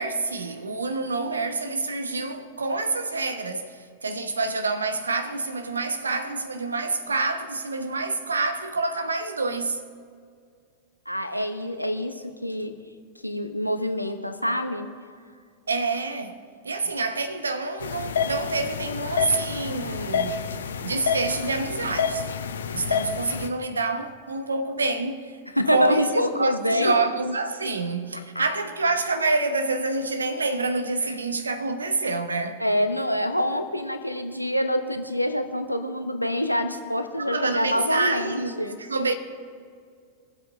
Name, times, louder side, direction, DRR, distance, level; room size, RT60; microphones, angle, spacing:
voice 1, 0.0-9.8 15.7-16.4 16.6-20.5 20.8-22.3 22.7-25.4 25.7-32.6 37.2-39.1, right 3 dB, 75° right, 0.9 m, -27 dB
voice 2, 11.1-12.7 13.2-14.9 25.6-27.0 31.0-31.1 32.6-38.8, left 1 dB, 90° left, 0.9 m, -26 dB
sound 1, 17.8-23.5, left 6 dB, 65° left, 0.7 m, -28 dB
23.0 x 7.8 x 3.6 m
figure-of-eight pair, 90°, 0 cm